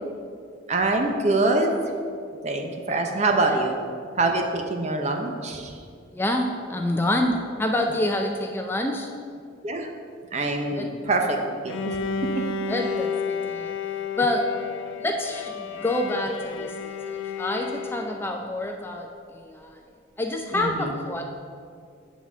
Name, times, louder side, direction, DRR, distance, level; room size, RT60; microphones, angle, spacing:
voice 1, 0.7-1.7 2.4-3.8 4.2-5.7 9.6-9.9 10.3-11.4 11.6-12.0 20.5-20.9, right 2 dB, 35° right, 3 dB, 0.7 m, -24 dB
voice 2, 6.1-9.1 10.7-10.9 12.7-13.7 14.2-14.5 15.0-19.8 20.2-21.2, left 1 dB, 10° left, 3 dB, 0.3 m, -27 dB
Bowed string instrument, 11.7-18.4, left 5 dB, 80° left, 0.4 m, -31 dB
8.1 x 4.0 x 6.0 m, 2.3 s
head